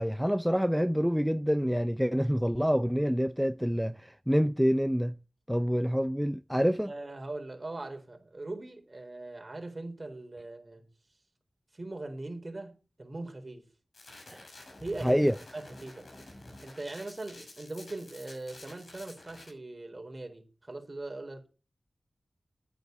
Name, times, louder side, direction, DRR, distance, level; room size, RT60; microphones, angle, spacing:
voice 1, 0.0-5.1 5.5-6.9 14.3-14.5 15.0-15.3, equal, ahead, 0.6 m, -27 dB
voice 2, 6.9-10.9 11.7-13.7 14.8-15.3 15.5-16.1 16.6-21.5, right 2 dB, 35° right, 4.2 m, -40 dB
sound 1, 13.9-19.5, left 2 dB, 65° left, 6.1 m, -50 dB
11.5 x 9.2 x 8.1 m
wide cardioid pair, 90°, 0 cm